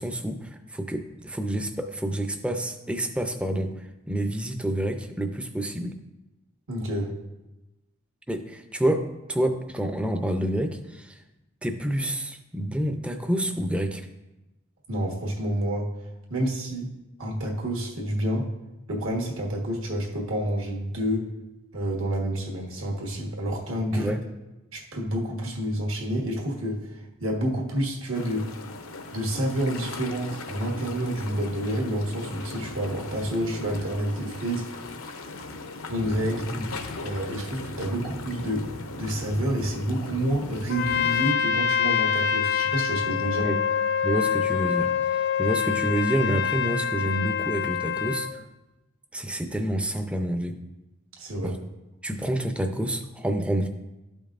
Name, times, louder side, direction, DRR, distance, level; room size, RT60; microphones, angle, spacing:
voice 1, 0.0-3.7 4.1-6.0 8.3-11.2 11.6-14.1 23.9-24.2 36.5-36.7 43.4-43.6 44.0-48.3 49.1-50.6 51.4-51.6 52.0-53.7, right 1 dB, 5° right, 6 dB, 0.4 m, -28 dB
voice 2, 6.7-7.1 14.9-15.9 16.3-16.9 17.2-18.5 18.9-21.3 21.7-24.1 24.7-28.5 29.1-34.8 35.9-36.4 37.0-38.7 39.0-43.5 51.2-51.6, right 1 dB, 70° right, 0 dB, 1.4 m, -29 dB
sound 1, 28.1-41.3, left 3 dB, 80° left, 0.7 m, -38 dB
Trumpet, 40.7-48.4, left 7 dB, 55° left, 0.3 m, -25 dB
12.5 x 5.3 x 2.5 m, 1.0 s
head